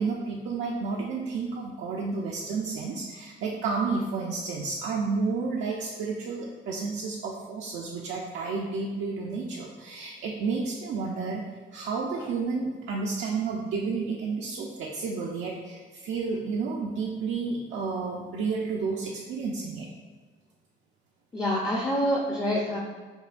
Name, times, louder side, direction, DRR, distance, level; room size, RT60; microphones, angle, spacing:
voice 1, 0.0-11.4 11.7-19.9, right 4 dB, 75° right, -3 dB, 0.5 m, -31 dB
voice 2, 21.3-22.8, equal, 15° left, -2 dB, 0.5 m, -26 dB
5.4 x 2.2 x 2.5 m, 1.4 s
cardioid pair, 90°, 20 cm